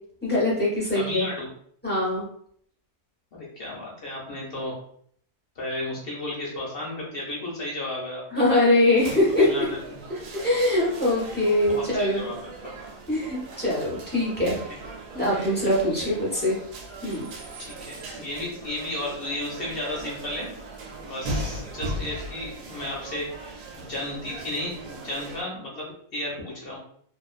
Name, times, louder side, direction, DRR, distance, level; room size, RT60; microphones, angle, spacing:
voice 1, 0.2-1.2 1.8-2.3 8.3-9.5 10.4-12.3 13.1-14.6 15.1-16.6 17.0-17.3, left 1 dB, 10° left, -7 dB, 0.5 m, -22 dB
voice 2, 0.9-1.5 3.3-4.7 5.6-8.4 9.3-10.0 11.6-12.7 14.7-14.8 17.6-20.5 21.0-23.3 23.8-26.8, left 1 dB, 55° left, -4 dB, 0.7 m, -33 dB
sound 1, 9.0-25.4, right 2 dB, 75° right, 1.1 m, -38 dB
2.5 x 2.2 x 2.3 m, 0.63 s
omnidirectional pair, 1.6 m